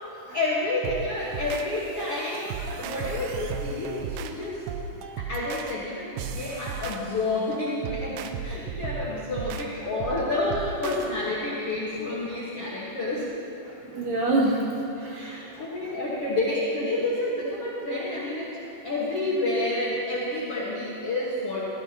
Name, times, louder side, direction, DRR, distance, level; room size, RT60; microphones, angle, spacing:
voice 1, 0.3-4.6 5.2-13.4 15.0-21.6, left 2 dB, 60° left, -6 dB, 1.6 m, -29 dB
sound 1, 0.8-11.1, right 6 dB, 85° right, 2.5 m, -36 dB
voice 2, 2.7-3.0 5.1-5.2 6.2-6.6 10.0-10.1 12.3-12.4 12.8-12.9 13.6-15.6, right 2 dB, 60° right, -7 dB, 3.9 m, -29 dB
16.5 x 15.0 x 2.9 m, 2.8 s
omnidirectional pair, 4.6 m